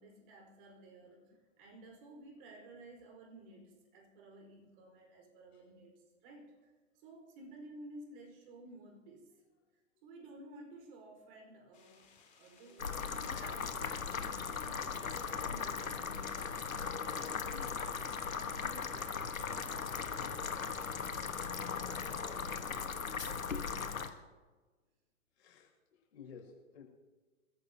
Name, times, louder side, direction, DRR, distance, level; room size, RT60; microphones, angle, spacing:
voice 1, 0.0-9.3 10.0-16.7 17.0-21.0 21.9-22.6 22.9-24.2, right 1 dB, 40° right, 2 dB, 4.8 m, -55 dB
sound 1, 11.7-22.5, left 5 dB, 20° left, 3.9 m, -59 dB
sound 2, 12.8-24.1, left 6 dB, 80° left, 1.5 m, -38 dB
voice 2, 25.3-26.8, left 6 dB, 55° left, 1 dB, 6.7 m, -55 dB
28.0 x 14.5 x 2.9 m, 1.3 s
figure-of-eight pair, 115°, 40 cm